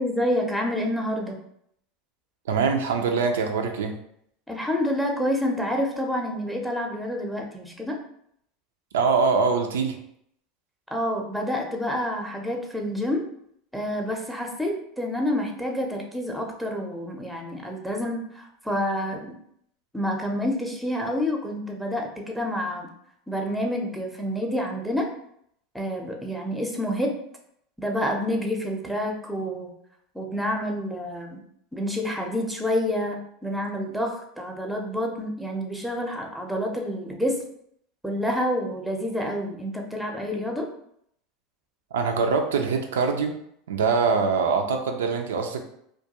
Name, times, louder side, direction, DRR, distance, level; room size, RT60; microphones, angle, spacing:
voice 1, 0.0-1.4 4.5-8.0 10.9-13.3 13.7-19.2 19.9-22.9 23.3-25.1 25.7-27.2 27.8-29.7 30.1-31.4 31.7-37.4 38.0-40.7, left 1 dB, ahead, 1 dB, 0.5 m, -28 dB
voice 2, 2.5-4.0 8.9-10.0 41.9-43.4 43.7-45.6, right 5 dB, 85° right, 4 dB, 0.3 m, -23 dB
2.2 x 2.2 x 2.8 m, 0.71 s
hypercardioid pair, 95°, 0 cm